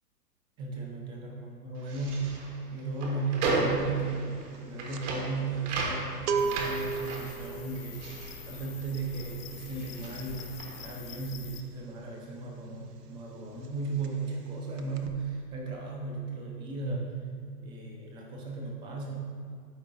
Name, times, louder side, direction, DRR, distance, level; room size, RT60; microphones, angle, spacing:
voice 1, 0.6-2.3 2.7-8.2 8.5-17.1 17.6-19.2, right 3 dB, 10° right, 0 dB, 0.5 m, -35 dB
sound 1, 1.8-9.3 9.5-11.0, right 3 dB, 45° right, 1.4 m, -35 dB
sound 2, 3.8-4.0 4.3-12.9 13.1-13.4 13.6-14.5 14.7-15.1, right 5 dB, 75° right, 0.8 m, -36 dB
sound 3, 6.4-11.6, left 6 dB, 60° left, 0.8 m, -45 dB
12.5 x 4.5 x 2.6 m, 2.2 s
hypercardioid pair, 120°, 48 cm